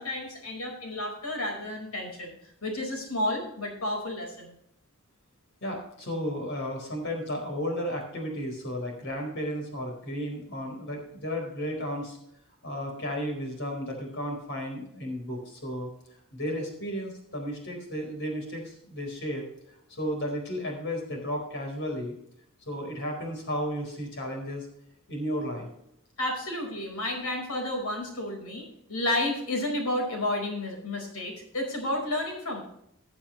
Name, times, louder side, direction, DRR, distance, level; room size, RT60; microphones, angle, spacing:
voice 1, 0.0-2.3 2.6-4.5 26.2-32.6, left 1 dB, 80° left, 2 dB, 4.9 m, -31 dB
voice 2, 5.6-12.2 12.6-15.9 16.3-19.4 19.9-22.2 22.7-24.7 25.1-25.7, equal, 55° left, 2 dB, 4.5 m, -33 dB
19.5 x 7.0 x 3.2 m, 0.74 s
head